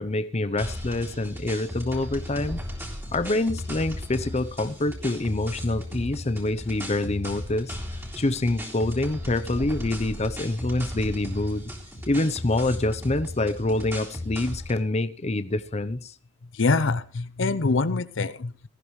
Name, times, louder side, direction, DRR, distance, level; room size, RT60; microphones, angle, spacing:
voice 1, 0.0-2.6 3.1-7.8 8.2-11.6 12.1-16.1, left 2 dB, 35° left, 0.7 m, -26 dB
sound 1, 0.6-14.8, left 1 dB, 15° right, 3.6 m, -36 dB
voice 2, 16.5-18.7, left 3 dB, 75° left, 0.7 m, -25 dB
18.5 x 14.5 x 3.2 m
head